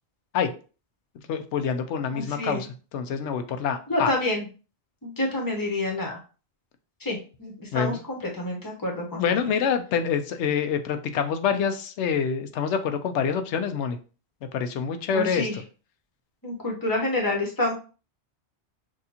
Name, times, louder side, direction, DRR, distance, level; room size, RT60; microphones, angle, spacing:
voice 1, 1.3-4.1 7.7-8.0 9.1-14.0 14.5-15.6, left 7 dB, 90° left, 8 dB, 0.9 m, -26 dB
voice 2, 2.1-2.6 3.9-4.5 5.0-6.2 7.0-9.2 15.1-15.6 16.4-17.7, left 1 dB, 20° left, -1 dB, 0.9 m, -28 dB
6.2 x 2.4 x 2.8 m, 0.36 s
omnidirectional pair, 1.1 m